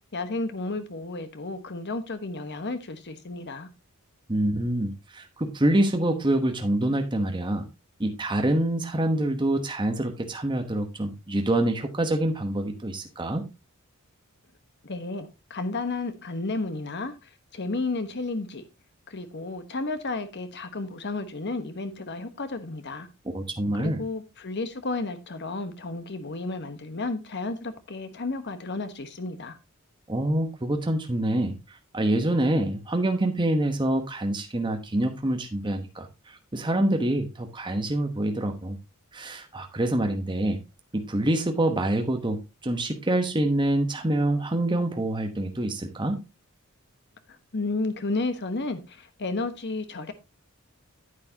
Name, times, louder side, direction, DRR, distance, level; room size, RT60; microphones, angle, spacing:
voice 1, 0.1-3.7 14.8-18.7 19.1-23.1 23.7-29.6 47.3-50.1, left 3 dB, 55° left, 1.2 m, -32 dB
voice 2, 4.3-7.6 8.0-13.4 23.3-24.0 30.1-38.8 39.1-40.6 40.9-46.2, right 1 dB, 20° right, 1.1 m, -26 dB
9.6 x 8.5 x 2.8 m
head